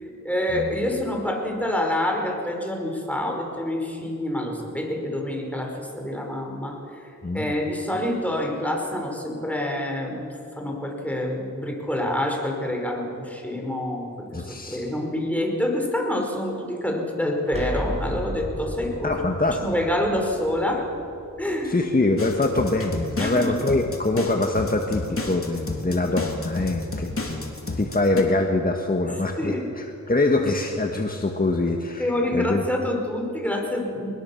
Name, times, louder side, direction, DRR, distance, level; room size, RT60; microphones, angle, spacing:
voice 1, 0.0-10.3 10.6-19.2 19.6-20.8 21.4-21.8 23.2-23.6 29.0-29.7 30.3-30.4 32.0-34.1, left 1 dB, 5° left, 1 dB, 5.1 m, -27 dB
voice 2, 7.2-7.5 14.3-14.8 19.0-19.6 21.6-32.1 32.3-32.6, left 2 dB, 25° left, 3 dB, 1.7 m, -24 dB
sound 1, 17.5-23.2, right 1 dB, 20° right, 5.2 m, -36 dB
sound 2, 22.2-28.2, left 2 dB, 40° left, 3.3 m, -31 dB
22.0 x 20.5 x 7.2 m, 2.7 s
cardioid pair, 65°, 32 cm